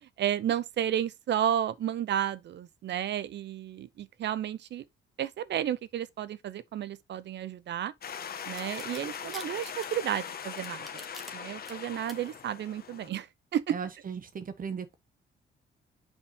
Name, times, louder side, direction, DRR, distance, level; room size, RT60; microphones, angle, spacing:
voice 1, 0.0-4.8 5.2-7.9 8.5-11.0 11.3-13.3 13.5-13.7, right 10 dB, 65° right, 0.7 m, -32 dB
FX - fuente ornamentacion, 8.0-13.1, left 7 dB, 50° left, 1.2 m, -40 dB
sound 1, 8.6-11.3 11.6-12.1, left 1 dB, ahead, 1.9 m, -46 dB
voice 2, 13.7-15.0, right 6 dB, 45° right, 1.1 m, -37 dB
7.2 x 5.5 x 2.9 m
cardioid pair, 90°, 20 cm